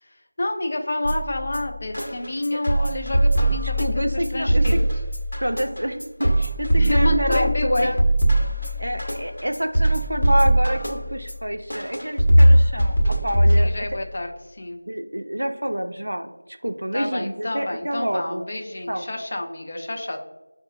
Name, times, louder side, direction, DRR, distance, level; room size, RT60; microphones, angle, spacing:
voice 1, 0.0-4.8 6.8-7.9 13.6-14.8 16.9-20.2, left 1 dB, 35° left, 3 dB, 0.4 m, -29 dB
sound 1, 1.0-14.0, right 1 dB, 70° left, 1.1 m, -21 dB
voice 2, 3.8-4.8 5.4-8.0 8.8-13.7 14.9-16.3 16.6-18.5 18.9-19.1, equal, 80° right, 7 dB, 0.4 m, -27 dB
5.3 x 2.4 x 2.8 m, 1.0 s
figure-of-eight pair, 175°, 0 cm